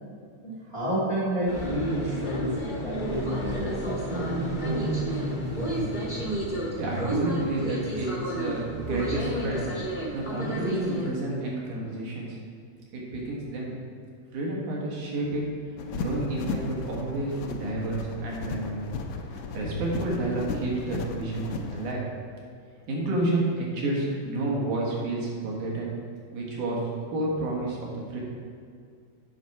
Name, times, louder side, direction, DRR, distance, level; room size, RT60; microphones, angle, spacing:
voice 1, 0.4-5.3, equal, 15° left, -8 dB, 1.3 m, -30 dB
sound 1, 1.5-11.1, right 1 dB, 50° left, 0.5 m, -31 dB
voice 2, 6.8-9.7 10.1-12.4 12.9-13.8 14.3-15.4 15.9-18.9 19.3-22.1 22.9-25.9 26.3-26.8 27.1-28.2, right 2 dB, 80° right, -3 dB, 3.0 m, -30 dB
sound 2, 15.8-21.9, left 4 dB, 80° left, 1.9 m, -35 dB
8.2 x 6.0 x 4.7 m, 2.2 s
omnidirectional pair, 3.5 m